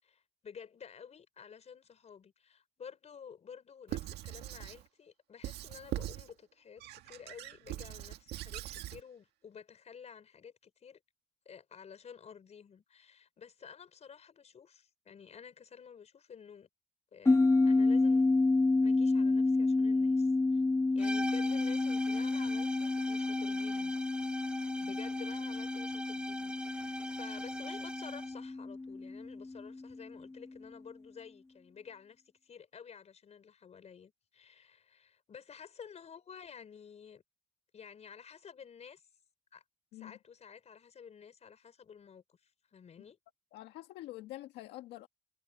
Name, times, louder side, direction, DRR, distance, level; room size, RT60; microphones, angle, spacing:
voice 1, 0.0-11.0 11.4-16.7 17.1-18.2 18.8-20.6 20.9-24.0 24.7-37.2 37.7-39.0 39.5-39.6 39.9-43.2, left 7 dB, 40° left, 5.1 m, -52 dB
Squeak / Writing, 3.9-4.8 5.4-6.3 6.8-9.0, right 14 dB, 80° right, 1.7 m, -41 dB
sound 1, 17.3-30.0, left 3 dB, 15° left, 1.1 m, -30 dB
sound 2, 21.0-28.4, right 1 dB, 5° right, 0.7 m, -43 dB
voice 2, 43.5-45.1, left 16 dB, 90° left, 1.7 m, -46 dB
cardioid pair, 110°, 17 cm